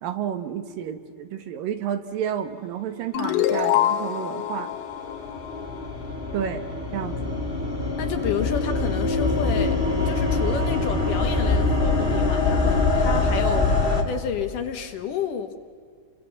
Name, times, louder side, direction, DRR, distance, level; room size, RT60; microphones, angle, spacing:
voice 1, 0.0-4.7 6.3-6.6 6.9-7.4, right 9 dB, 70° right, 9 dB, 2.9 m, -31 dB
sound 1, 3.1-6.4, left 12 dB, 90° left, 3.2 m, -26 dB
sound 2, 4.3-14.0, left 3 dB, 20° left, 1.6 m, -24 dB
voice 2, 8.0-9.8 10.0-13.7 14.1-15.6, left 7 dB, 65° left, 7 dB, 2.7 m, -30 dB
29.5 x 25.0 x 7.2 m, 2.1 s
omnidirectional pair, 4.4 m